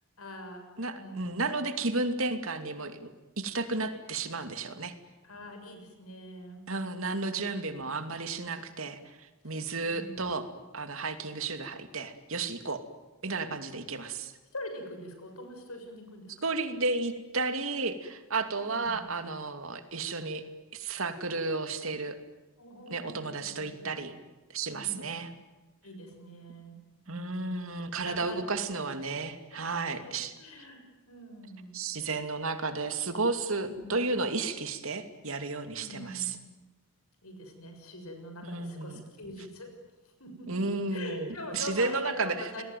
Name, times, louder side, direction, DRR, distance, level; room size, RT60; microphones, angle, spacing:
voice 1, 0.2-0.7 0.9-1.6 5.2-6.7 7.7-8.0 9.4-9.5 9.9-10.3 14.5-16.5 18.5-19.3 22.6-24.0 24.7-25.1 25.8-26.8 27.1-27.6 28.0-28.7 29.5-31.8 33.6-34.0 35.7-36.4 37.2-39.7 40.0-42.6, left 1 dB, 85° left, 5 dB, 6.6 m, -44 dB
voice 2, 0.8-3.1 3.4-4.9 6.7-9.0 9.4-10.5 10.7-12.8 13.2-14.3 16.4-20.4 20.7-22.2 22.9-24.1 24.5-25.3 27.1-30.3 31.7-36.4 38.4-39.0 40.5-42.6, right 3 dB, 70° right, 8 dB, 2.7 m, -33 dB
29.5 x 21.5 x 9.4 m, 1.1 s
head